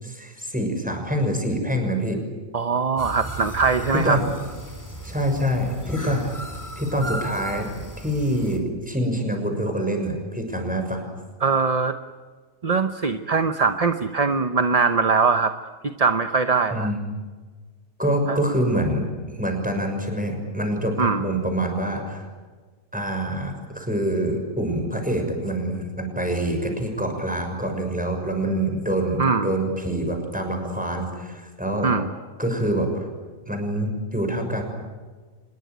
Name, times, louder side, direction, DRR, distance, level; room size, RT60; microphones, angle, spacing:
voice 1, 0.0-2.2 3.9-4.2 5.0-6.3 6.8-7.7 8.0-11.0 16.7-17.0 18.0-19.0 19.3-22.3 22.9-31.9 32.4-33.1 33.5-34.6, right 1 dB, 5° right, 3 dB, 6.3 m, -25 dB
voice 2, 2.5-4.2 11.4-11.9 12.6-15.5 15.8-16.9 18.3-18.4 21.0-21.3 29.2-29.5 31.8-32.1, right 5 dB, 30° right, 8 dB, 0.9 m, -21 dB
sound 1, 3.0-8.6, right 1 dB, 10° left, 3.5 m, -36 dB
26.0 x 21.5 x 9.4 m, 1.4 s
omnidirectional pair, 1.5 m